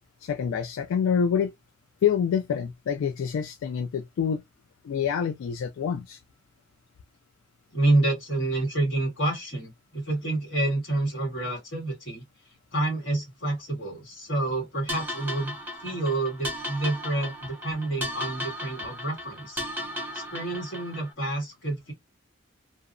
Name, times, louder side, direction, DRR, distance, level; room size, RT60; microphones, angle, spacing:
voice 1, 0.2-1.6 2.0-4.4 4.8-6.2, left 7 dB, 80° left, 0.3 m, -26 dB
voice 2, 7.7-12.2 12.7-15.6 15.8-19.6 20.1-21.9, right 2 dB, 65° left, 1.5 m, -28 dB
sound 1, 14.9-21.1, left 1 dB, 10° right, 0.5 m, -36 dB
2.7 x 2.0 x 2.4 m
head